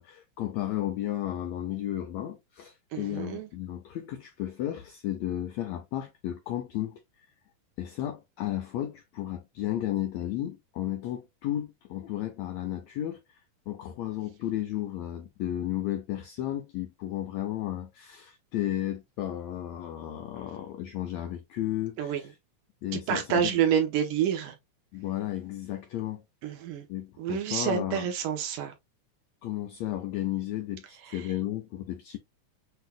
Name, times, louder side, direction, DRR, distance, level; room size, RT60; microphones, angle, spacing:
voice 1, 0.0-7.0 7.8-13.4 13.7-22.1 22.8-23.4 24.9-26.2 26.9-28.1 29.4-32.2, left 12 dB, 85° left, 1.6 m, -33 dB
voice 2, 2.9-3.5 22.0-22.3 22.9-24.6 26.4-26.9 27.2-28.7 31.0-31.3, right 8 dB, 75° right, 2.5 m, -28 dB
7.9 x 2.8 x 2.3 m
omnidirectional pair, 3.9 m